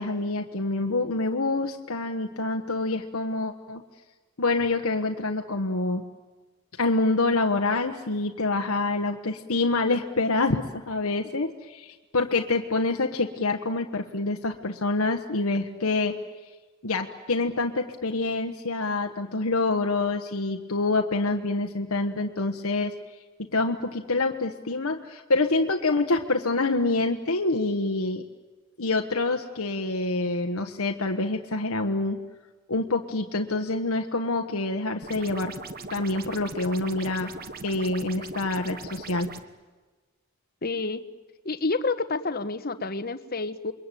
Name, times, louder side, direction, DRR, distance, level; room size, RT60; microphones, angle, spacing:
voice 1, 0.0-3.8 4.4-6.0 6.8-16.2 16.8-22.9 23.4-28.2 28.8-32.2 32.7-35.5 35.9-37.3 37.6-39.3, left 2 dB, 75° left, 4 dB, 1.3 m, -26 dB
sound 1, 35.0-39.4, right 3 dB, 45° right, 1.5 m, -39 dB
voice 2, 40.6-41.0 41.4-43.7, left 3 dB, 45° left, 12 dB, 1.2 m, -29 dB
28.5 x 23.0 x 9.2 m, 1.3 s
head